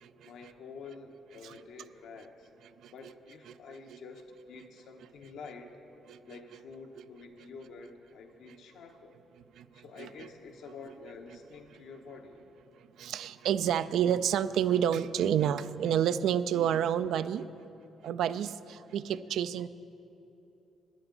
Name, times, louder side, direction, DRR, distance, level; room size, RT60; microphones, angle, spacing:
voice 1, 0.2-2.5 2.9-5.8 6.3-9.2 9.7-12.4, left 4 dB, 80° left, 4 dB, 0.9 m, -48 dB
voice 2, 9.6-10.1 13.0-17.5 18.0-19.7, right 9 dB, 75° right, 13 dB, 0.3 m, -29 dB
13.5 x 10.0 x 3.9 m, 2.9 s
cardioid pair, 90°, 0 cm